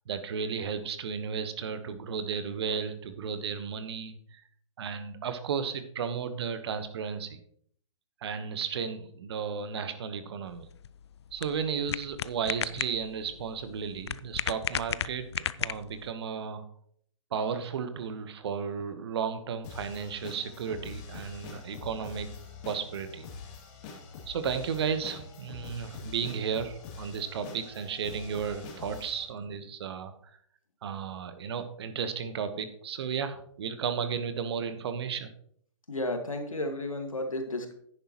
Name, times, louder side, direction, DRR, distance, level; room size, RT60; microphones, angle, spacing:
voice 1, 0.1-4.4 4.8-7.4 8.2-10.7 11.3-16.6 17.3-22.3 22.6-23.3 24.3-30.1 30.8-35.3, right 6 dB, 50° right, 10 dB, 1.2 m, -34 dB
sound 1, 10.5-16.1, left 10 dB, 55° left, 0.4 m, -35 dB
sound 2, 19.6-29.2, left 5 dB, 30° left, 2.8 m, -45 dB
voice 2, 35.9-37.7, left 1 dB, 85° left, 4 dB, 1.9 m, -33 dB
10.5 x 10.0 x 3.0 m, 0.64 s
figure-of-eight pair, 125°, 17 cm